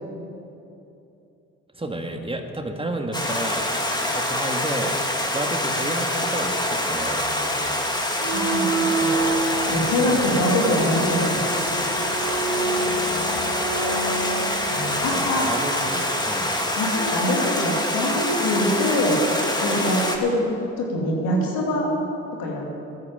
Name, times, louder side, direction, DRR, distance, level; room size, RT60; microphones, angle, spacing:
voice 1, 1.7-3.7 4.1-5.0 5.3-7.8 10.1-10.2 12.8-13.6 15.1-16.5, right 1 dB, 15° right, 4 dB, 1.7 m, -31 dB
Stream, 3.1-20.2, left 1 dB, 10° left, 2.1 m, -25 dB
sound 1, 8.2-15.1, right 3 dB, 80° right, 1.8 m, -28 dB
voice 2, 8.3-9.2 9.7-11.5 14.7-15.5 16.7-19.2 19.6-20.5 20.8-21.9 22.4-22.7, left 1 dB, 85° left, -1 dB, 2.6 m, -24 dB
13.0 x 9.8 x 7.7 m, 2.9 s
hypercardioid pair, 45°, 35 cm